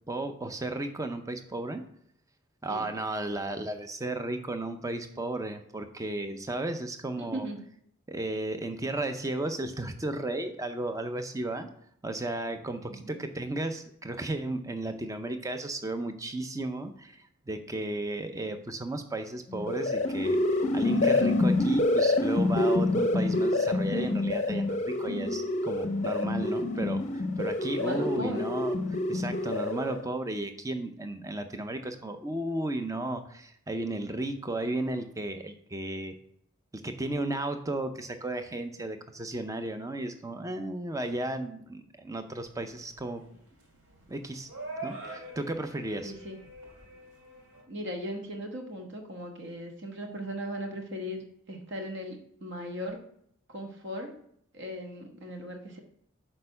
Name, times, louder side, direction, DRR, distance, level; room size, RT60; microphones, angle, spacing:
voice 1, 0.1-1.8 2.6-7.5 8.1-11.7 12.0-36.1 36.7-43.2 44.1-44.5 44.8-46.1, right 2 dB, 15° right, 8 dB, 0.5 m, -34 dB
voice 2, 7.2-7.6 12.9-13.2 27.7-28.5 46.0-46.4 47.7-53.0 53.5-54.1 54.5-55.8, equal, 50° right, 3 dB, 1.2 m, -38 dB
sound 1, 19.5-30.0, left 2 dB, 30° left, 0.6 m, -27 dB
sound 2, 42.3-47.6, right 2 dB, 75° right, 2.7 m, -44 dB
6.5 x 4.4 x 5.4 m, 0.70 s
head